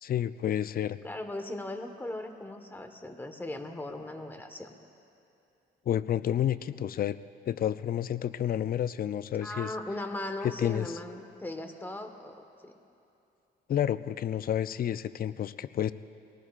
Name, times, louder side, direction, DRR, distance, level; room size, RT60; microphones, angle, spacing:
voice 1, 0.0-1.0 5.9-7.2 7.5-9.7 10.4-11.0 13.7-15.9, left 10 dB, 50° left, 13 dB, 0.5 m, -30 dB
voice 2, 1.0-4.8 9.4-12.8, left 1 dB, 10° left, 4 dB, 1.3 m, -38 dB
24.0 x 18.5 x 2.5 m, 2.7 s
cardioid pair, 90°, 20 cm